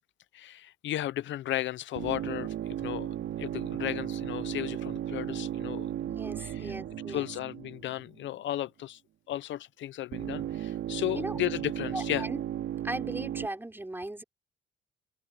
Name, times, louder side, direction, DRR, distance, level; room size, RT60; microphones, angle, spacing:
voice 1, 0.3-2.5 2.8-5.9 6.4-6.7 7.1-9.0 9.3-12.3, left 14 dB, 70° left, 0.6 m, -34 dB
sound 1, 2.0-8.3 10.1-13.5, right 11 dB, 75° right, 2.6 m, -35 dB
voice 2, 6.1-7.3 11.1-11.4 11.9-12.4 12.8-14.2, right 1 dB, 10° right, 4.5 m, -37 dB
open air
cardioid pair, 90°, 20 cm